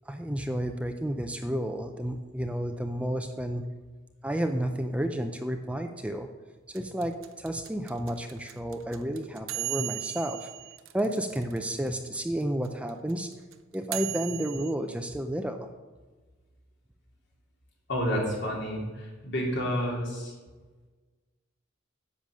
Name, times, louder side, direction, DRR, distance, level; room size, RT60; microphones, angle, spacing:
voice 1, 0.1-3.6 4.2-6.3 6.7-10.5 10.9-13.3 13.7-15.7, right 1 dB, 5° right, 6 dB, 0.5 m, -31 dB
sound 1, 6.7-11.9 12.1-12.2 12.4-14.7, right 14 dB, 85° right, 0.8 m, -36 dB
voice 2, 17.9-20.3, equal, 60° left, -2 dB, 3.1 m, -30 dB
10.5 x 7.0 x 6.3 m, 1.3 s
head